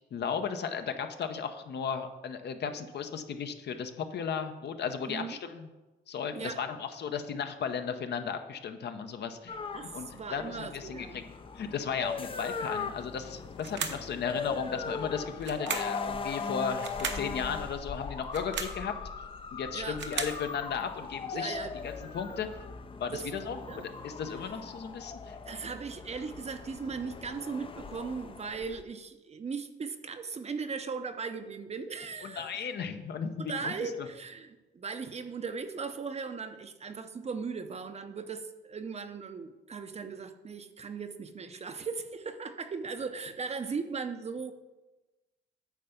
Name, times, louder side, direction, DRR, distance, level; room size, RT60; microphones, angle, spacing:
voice 1, 0.1-5.7 6.1-9.6 9.9-11.2 11.5-18.9 19.5-22.5 23.0-25.4 32.2-34.1, left 6 dB, 60° left, 8 dB, 0.8 m, -35 dB
voice 2, 5.1-5.4 6.3-6.6 9.7-11.2 19.7-20.0 21.3-21.7 23.1-23.8 25.5-32.5 33.4-44.5, right 5 dB, 35° right, 9 dB, 0.6 m, -38 dB
sound 1, 9.5-28.8, left 5 dB, 25° left, 0.5 m, -40 dB
sound 2, 13.6-14.1 15.4-16.0 16.8-17.3 18.2-18.8 19.7-20.4, right 7 dB, 65° right, 0.9 m, -36 dB
9.3 x 3.4 x 6.9 m, 1.1 s
cardioid pair, 90°, 20 cm